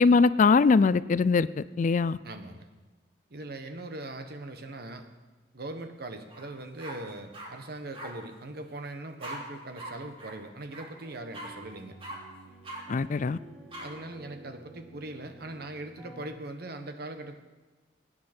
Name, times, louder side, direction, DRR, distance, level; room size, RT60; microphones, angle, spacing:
voice 1, 0.0-1.5 1.8-2.2 12.9-13.4, left 4 dB, 45° left, 17 dB, 0.4 m, -21 dB
voice 2, 2.2-2.7 3.3-5.1 5.5-11.9 13.8-17.4, right 2 dB, 60° right, 6 dB, 1.3 m, -40 dB
sound 1, 6.3-6.5 6.8-7.5 7.9-8.1 9.2-9.4 9.8-9.9 10.2-10.3 10.7-10.9 11.3-11.5 12.0-12.2 12.6-12.8 13.7-13.9, right 1 dB, 30° right, 3.1 m, -40 dB
sound 2, 11.0-16.3, right 2 dB, ahead, 3.3 m, -51 dB
23.0 x 9.4 x 4.4 m, 1.3 s
head